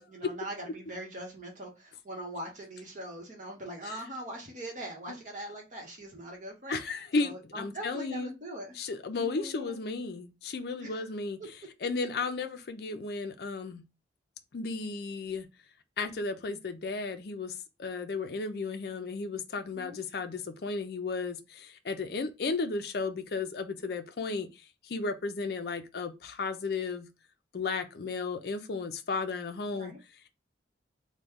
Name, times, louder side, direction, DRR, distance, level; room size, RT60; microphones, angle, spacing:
voice 1, 0.0-6.8 7.2-8.8 9.2-9.8 10.8-11.1 19.7-20.0 29.7-30.0, right 1 dB, 40° right, 1.0 m, -42 dB
voice 2, 6.7-8.3 8.8-11.4 11.8-13.8 14.5-15.5 16.0-27.1 27.5-30.0, left 4 dB, 55° left, 0.4 m, -34 dB
3.0 x 2.2 x 3.5 m
head